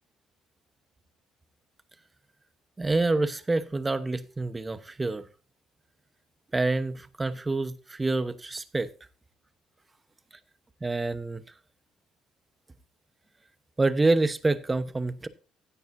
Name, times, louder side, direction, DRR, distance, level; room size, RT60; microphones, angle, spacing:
voice 1, 2.8-5.2 6.5-8.9 10.8-11.4 13.8-15.3, right 2 dB, 20° right, 13 dB, 1.1 m, -27 dB
16.0 x 8.9 x 2.7 m, 0.36 s
cardioid pair, 95°, 0 cm